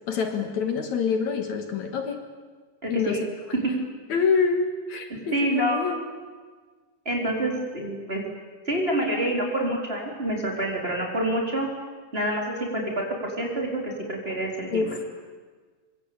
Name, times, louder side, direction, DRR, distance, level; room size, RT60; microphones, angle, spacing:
voice 1, 0.1-2.2 2.9-3.6 4.1-6.1 14.7-15.1, left 5 dB, 65° left, 6 dB, 2.8 m, -26 dB
voice 2, 2.8-3.2 3.6-3.7 5.1-5.8 7.0-8.2 8.7-11.7 12.1-13.0 13.4-14.9, right 1 dB, 15° right, 0 dB, 4.3 m, -27 dB
25.0 x 24.5 x 8.8 m, 1.5 s
omnidirectional pair, 3.7 m